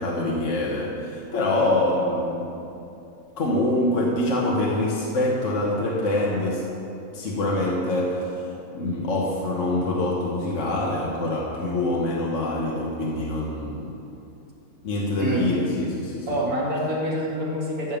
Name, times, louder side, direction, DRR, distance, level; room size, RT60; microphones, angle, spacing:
voice 1, 0.0-2.6 3.4-6.6 7.1-8.5 8.7-13.9 14.8-16.4, left 1 dB, 60° left, -3 dB, 1.5 m, -25 dB
voice 2, 16.3-18.0, equal, 85° right, -5 dB, 2.7 m, -26 dB
13.5 x 5.4 x 7.2 m, 2.7 s
omnidirectional pair, 1.5 m